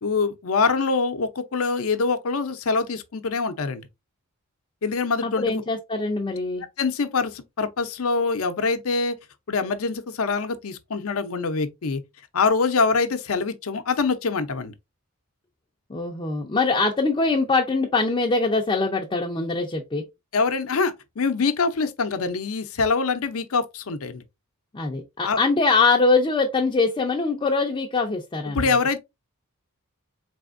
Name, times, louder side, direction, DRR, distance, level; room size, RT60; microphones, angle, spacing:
voice 1, 0.0-3.9 4.8-5.5 6.8-9.2 9.5-12.0 12.3-14.7 20.3-24.2 25.2-25.4 28.5-29.0, left 4 dB, 75° left, 0.6 m, -24 dB
voice 2, 5.2-6.7 15.9-20.0 24.7-28.8, left 3 dB, 25° left, 0.5 m, -23 dB
4.1 x 3.4 x 2.5 m
head